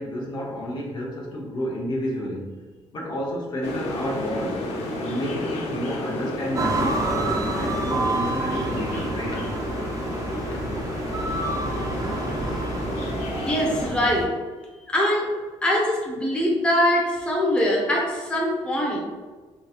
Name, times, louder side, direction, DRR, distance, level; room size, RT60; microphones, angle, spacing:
voice 1, 0.0-2.6 2.9-4.6 5.0-9.7 10.5-10.8, equal, 45° left, -2 dB, 0.9 m, -31 dB
sound 1, 3.6-13.9, left 1 dB, 90° left, 0.6 m, -31 dB
sound 2, 6.5-14.3, right 2 dB, 30° right, 0.5 m, -29 dB
voice 2, 13.5-14.3 14.9-15.3 15.6-19.0, left 1 dB, 10° left, -3 dB, 0.7 m, -23 dB
3.8 x 2.7 x 2.4 m, 1.3 s
cardioid pair, 105°, 10 cm